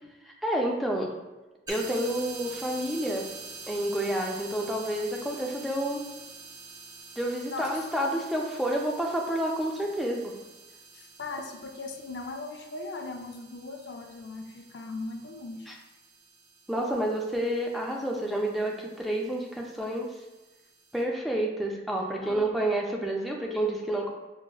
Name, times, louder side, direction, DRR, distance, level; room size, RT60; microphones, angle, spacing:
voice 1, 0.4-1.1 1.7-3.2 3.7-6.0 7.2-10.3 15.7-15.8 16.7-20.1 20.9-24.1, right 1 dB, ahead, -1 dB, 0.4 m, -29 dB
sound 1, 1.7-21.0, right 3 dB, 20° right, 0.7 m, -47 dB
voice 2, 7.4-7.8 10.9-15.7 22.2-22.5, left 3 dB, 70° left, 5 dB, 0.4 m, -39 dB
5.8 x 2.0 x 2.2 m, 1.1 s
head